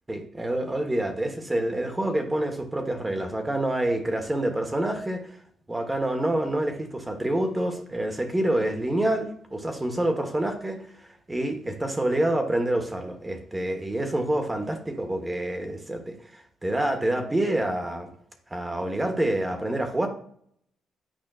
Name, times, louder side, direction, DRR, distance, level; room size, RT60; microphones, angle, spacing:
voice 1, 0.1-5.3 5.7-10.8 11.3-18.1 18.5-20.1, right 1 dB, 15° right, 6 dB, 1.1 m, -27 dB
9.0 x 5.0 x 2.4 m, 0.63 s
cardioid pair, 90°, 0 cm